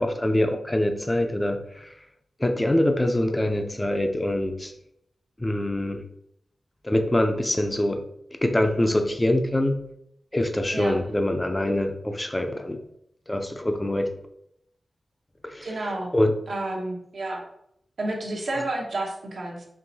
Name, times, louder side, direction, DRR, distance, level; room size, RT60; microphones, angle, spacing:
voice 1, 0.0-1.9 2.4-4.7 5.4-6.0 6.8-8.0 8.4-9.8 10.3-12.8 13.3-14.1 15.4-15.7 16.1-16.4, left 1 dB, 20° left, 6 dB, 0.5 m, -24 dB
voice 2, 15.6-16.1 16.5-17.4 18.0-19.7, right 2 dB, 70° right, -1 dB, 0.9 m, -30 dB
4.6 x 3.0 x 2.7 m, 0.75 s
wide cardioid pair, 75°, 0 cm